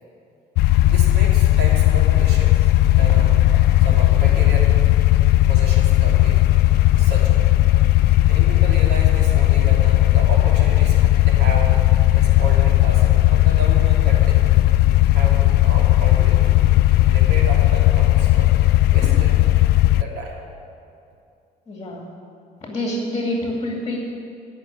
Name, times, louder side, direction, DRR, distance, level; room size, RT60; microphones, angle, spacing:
sound 1, 0.6-20.0, left 15 dB, 75° left, 0.4 m, -16 dB
voice 1, 0.8-2.7 3.0-4.7 5.5-6.4 7.0-7.6 8.3-14.5 15.1-16.6 17.0-19.6 19.9-20.4, right 1 dB, 75° right, -2 dB, 2.9 m, -32 dB
voice 2, 21.7-22.1 22.6-24.0, left 1 dB, 20° left, -1 dB, 2.3 m, -26 dB
16.0 x 6.0 x 8.5 m, 2.6 s
cardioid pair, 110°, 17 cm